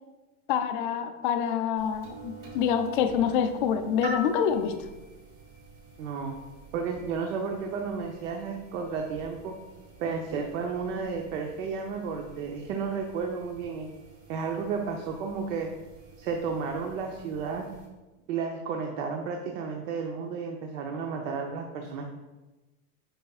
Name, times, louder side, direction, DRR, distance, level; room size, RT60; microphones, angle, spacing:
voice 1, 0.5-4.7, left 8 dB, 40° left, 7 dB, 0.4 m, -26 dB
sound 1, 1.8-17.9, right 2 dB, 30° right, 1.6 m, -47 dB
voice 2, 6.0-6.4 6.7-9.6 10.0-13.9 14.3-15.7 16.2-17.7 18.3-22.1, right 5 dB, 65° right, 2 dB, 0.8 m, -32 dB
9.0 x 5.6 x 2.4 m, 1.1 s
supercardioid pair, 175°, 44 cm